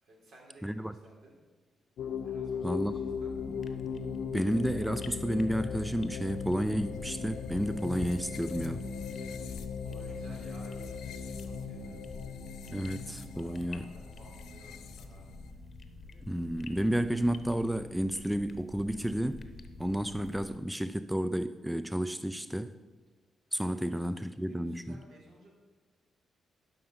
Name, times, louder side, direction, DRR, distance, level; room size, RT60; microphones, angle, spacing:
voice 1, 0.0-1.4 2.2-3.4 9.8-12.0 12.7-12.8 13.3-15.3 23.7-25.5, right 1 dB, 70° right, -2 dB, 3.5 m, -58 dB
voice 2, 0.6-0.9 2.6-3.0 4.3-8.8 12.7-13.9 16.3-19.5 19.8-22.7 23.5-24.8, equal, 5° right, 12 dB, 0.4 m, -31 dB
sound 1, 2.0-15.5, left 6 dB, 85° left, 0.7 m, -39 dB
sound 2, 2.8-20.5, right 4 dB, 45° right, 0.7 m, -55 dB
sound 3, 3.3-20.6, left 5 dB, 45° left, 0.9 m, -49 dB
11.5 x 5.6 x 5.8 m, 1.4 s
cardioid pair, 90°, 0 cm